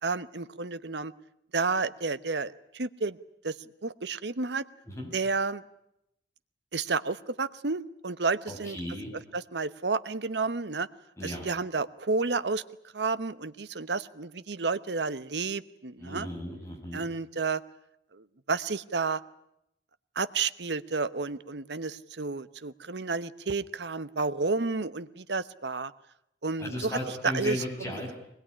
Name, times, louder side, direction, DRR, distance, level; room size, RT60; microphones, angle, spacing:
voice 1, 0.0-1.1 1.5-3.2 3.4-4.6 5.1-5.6 6.7-8.8 9.1-10.9 11.2-12.6 12.9-16.3 16.9-17.6 18.1-19.2 20.2-25.9 26.4-27.0 27.2-28.1, right 4 dB, 70° right, 14 dB, 1.0 m, -31 dB
voice 2, 8.5-9.1 11.2-11.5 16.0-17.1 26.6-28.1, left 1 dB, 15° left, 0 dB, 7.1 m, -36 dB
23.0 x 21.0 x 9.9 m, 0.80 s
head